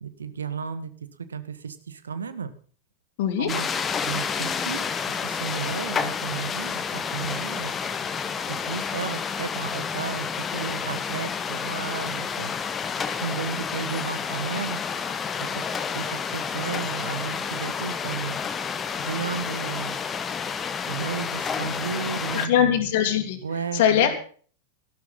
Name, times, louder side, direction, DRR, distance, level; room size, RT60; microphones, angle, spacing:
voice 1, 0.0-2.5 3.4-3.7 4.0-7.7 8.5-12.5 13.2-14.8 15.4-18.4 19.0-20.0 20.9-22.8 23.4-24.1, right 6 dB, 70° right, 13 dB, 1.5 m, -33 dB
voice 2, 3.2-3.5 22.3-23.4 23.7-24.2, left 9 dB, 50° left, 6 dB, 2.7 m, -21 dB
sound 1, 3.5-22.5, left 6 dB, 20° left, 1.3 m, -30 dB
13.0 x 12.5 x 5.7 m, 0.43 s
figure-of-eight pair, 90°, 0 cm